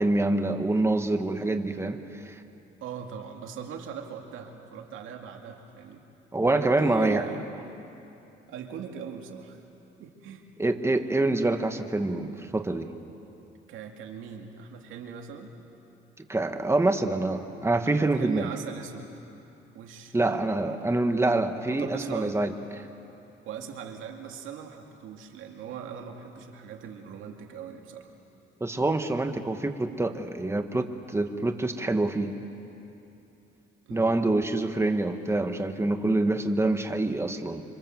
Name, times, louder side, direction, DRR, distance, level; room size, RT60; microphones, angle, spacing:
voice 1, 0.0-2.4 6.3-7.3 10.6-12.9 16.3-18.5 20.1-22.5 28.6-32.3 33.9-37.6, right 2 dB, 15° right, 7 dB, 1.5 m, -26 dB
voice 2, 2.8-6.0 6.5-7.4 8.5-9.6 10.0-10.5 13.7-15.5 17.8-19.1 19.7-20.2 21.7-22.4 23.4-28.1 33.9-34.2, right 7 dB, 90° right, 3 dB, 2.4 m, -40 dB
27.0 x 26.0 x 7.8 m, 2.9 s
cardioid pair, 90°, 20 cm